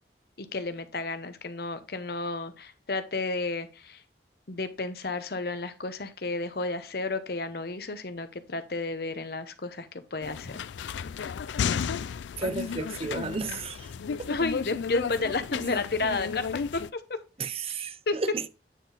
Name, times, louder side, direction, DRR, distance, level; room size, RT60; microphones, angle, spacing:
voice 1, 0.4-4.0 4.5-10.6 14.3-17.2 18.1-18.2, left 3 dB, 60° left, 0.8 m, -32 dB
sound 1, 10.2-16.9, left 6 dB, 85° left, 0.3 m, -33 dB
voice 2, 12.4-13.9 14.2-14.3 17.4-18.5, right 4 dB, 35° right, 0.5 m, -33 dB
9.1 x 4.0 x 3.9 m
head